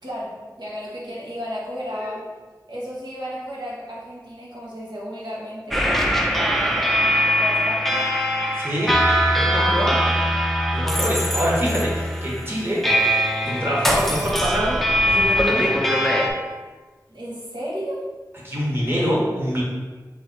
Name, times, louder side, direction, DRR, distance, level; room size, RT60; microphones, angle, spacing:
voice 1, 0.0-2.2 2.7-5.8 6.3-8.0 8.8-8.9 13.4-13.7 17.1-18.1, equal, 80° right, -7 dB, 1.4 m, -33 dB
sound 1, 5.7-16.3, equal, 5° left, 0.6 m, -21 dB
voice 2, 8.6-8.9 9.3-10.0 10.7-12.8 13.5-15.7 18.4-19.6, equal, 30° right, -5 dB, 1.5 m, -25 dB
3.5 x 3.5 x 4.1 m, 1.3 s
wide cardioid pair, 45°, 7 cm